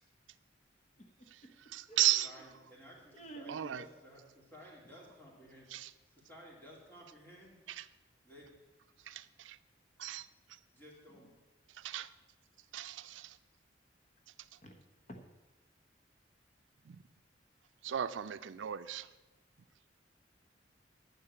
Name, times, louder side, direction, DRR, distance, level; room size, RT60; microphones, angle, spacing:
voice 1, 1.0-2.3 3.1-3.8 11.1-11.2 14.6-14.8 15.1-15.2, right 2 dB, 40° left, 4 dB, 1.0 m, -51 dB
voice 2, 1.7-2.3 3.5-3.8 5.7-5.9 7.8-7.9 9.1-9.6 10.0-10.3 11.8-12.1 12.7-13.3 16.9-17.0 17.8-19.1, right 13 dB, 85° right, 13 dB, 0.4 m, -35 dB
voice 3, 2.2-5.7 6.1-7.6 8.2-8.5 10.7-11.3, equal, 10° left, -4 dB, 2.9 m, -55 dB
9.8 x 6.5 x 8.2 m, 1.1 s
head